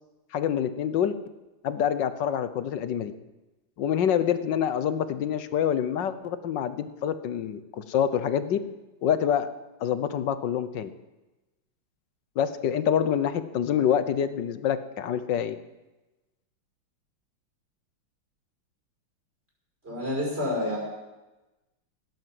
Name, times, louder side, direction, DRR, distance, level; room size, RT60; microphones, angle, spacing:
voice 1, 0.3-1.1 1.6-3.1 3.8-8.6 9.0-9.5 9.8-10.9 12.4-15.6, left 9 dB, 65° left, 13 dB, 1.5 m, -26 dB
voice 2, 19.8-20.8, left 1 dB, 25° right, -2 dB, 6.2 m, -28 dB
17.0 x 11.0 x 7.7 m, 1.1 s
omnidirectional pair, 2.3 m